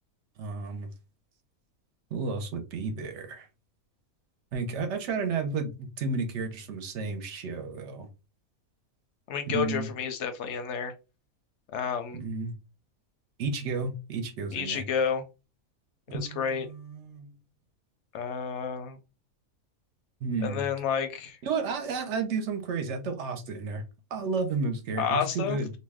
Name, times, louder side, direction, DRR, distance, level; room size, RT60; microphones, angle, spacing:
voice 1, 0.4-0.9 2.1-3.5 4.5-8.1 9.5-9.9 12.1-12.5 13.4-14.8 16.1-17.3 20.2-20.6 21.4-23.8 24.1-25.7, right 4 dB, 60° right, 0.8 m, -32 dB
voice 2, 9.3-10.9 11.7-12.2 14.5-15.2 16.1-16.7 18.1-19.0 20.4-21.4 25.0-25.6, left 7 dB, 65° left, 0.7 m, -30 dB
2.6 x 2.1 x 3.4 m
omnidirectional pair, 1.5 m